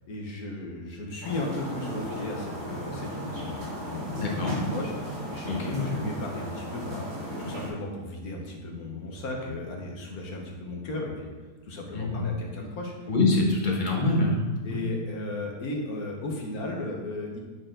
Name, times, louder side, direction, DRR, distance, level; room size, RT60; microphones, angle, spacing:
voice 1, 0.1-7.1 7.4-11.3 11.6-12.9 14.6-17.4, left 2 dB, 65° left, 0 dB, 1.5 m, -36 dB
sound 1, 1.2-7.7, equal, 70° right, 2.6 m, -36 dB
voice 2, 4.1-4.6 5.4-5.9 11.9-12.2 13.1-14.8, left 2 dB, 30° left, -1 dB, 1.2 m, -25 dB
8.4 x 4.4 x 3.8 m, 1.3 s
omnidirectional pair, 1.8 m